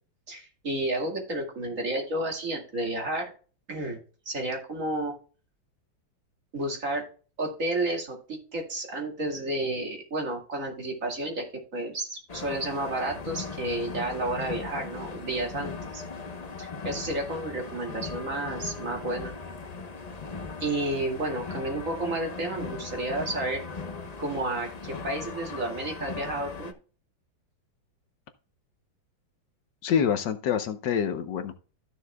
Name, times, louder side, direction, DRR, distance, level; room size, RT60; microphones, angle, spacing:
voice 1, 0.3-3.3 3.7-4.0 4.3-5.1 6.5-7.0 7.4-11.5 11.7-16.0 16.6-19.3 20.6-23.6 24.2-26.7, right 1 dB, 45° right, 1 dB, 2.5 m, -31 dB
sound 1, 12.3-26.7, left 4 dB, 40° left, 0.6 m, -38 dB
voice 2, 29.8-31.6, left 8 dB, 70° left, 9 dB, 1.4 m, -26 dB
14.0 x 6.5 x 2.2 m, 0.38 s
omnidirectional pair, 2.1 m